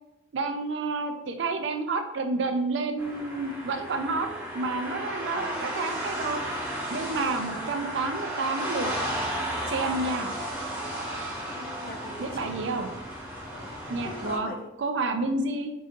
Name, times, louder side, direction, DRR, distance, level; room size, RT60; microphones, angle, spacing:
voice 1, 0.3-4.3 4.5-6.5 6.9-8.9 9.7-10.3 12.2-12.9 13.9-14.5 14.8-15.7, right 3 dB, 85° right, 7 dB, 0.4 m, -29 dB
sound 1, 3.0-14.4, right 1 dB, 10° right, 0.8 m, -34 dB
voice 2, 11.4-12.6 13.5-14.7, left 2 dB, 50° left, 3 dB, 0.4 m, -42 dB
4.7 x 2.6 x 2.5 m, 0.90 s
head